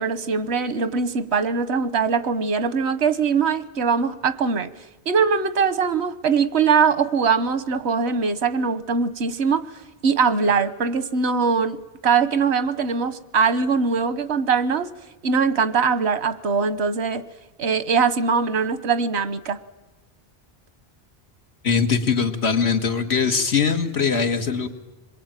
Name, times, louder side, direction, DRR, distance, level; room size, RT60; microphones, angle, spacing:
voice 1, 0.0-4.7 5.1-9.7 10.0-14.9 15.2-17.2 17.6-19.6, right 5 dB, 90° right, 14 dB, 1.3 m, -22 dB
voice 2, 21.6-24.7, left 5 dB, 85° left, 5 dB, 2.0 m, -21 dB
27.0 x 22.0 x 9.0 m, 1.1 s
omnidirectional pair, 1.1 m